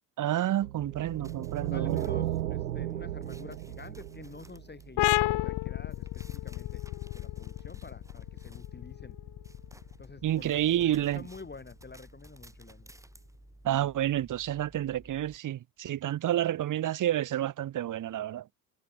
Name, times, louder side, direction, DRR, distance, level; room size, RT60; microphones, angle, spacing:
voice 1, 0.2-2.0 10.2-11.2 13.6-18.5, right 12 dB, 40° right, 1.1 m, -29 dB
sound 1, 0.6-5.0, right 13 dB, 90° right, 1.5 m, -34 dB
sound 2, 1.0-15.4, right 1 dB, 5° right, 3.3 m, -54 dB
voice 2, 1.7-6.8 7.1-9.2 10.0-12.9, left 4 dB, 20° left, 5.3 m, -48 dB
sound 3, 5.0-12.3, left 17 dB, 55° left, 1.6 m, -33 dB
hypercardioid pair, 65°, 48 cm